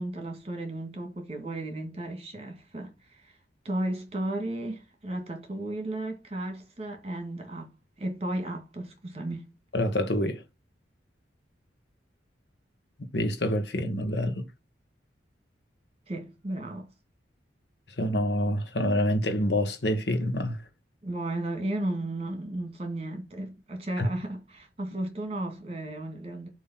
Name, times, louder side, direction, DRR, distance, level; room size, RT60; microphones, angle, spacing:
voice 1, 0.0-3.3 3.6-7.7 8.0-9.5 16.1-16.9 21.0-26.5, right 1 dB, 35° right, 2.0 m, -34 dB
voice 2, 9.7-10.4 13.0-14.5 18.0-20.6 24.0-24.1, left 1 dB, 65° left, 1.3 m, -27 dB
7.4 x 3.1 x 5.9 m
head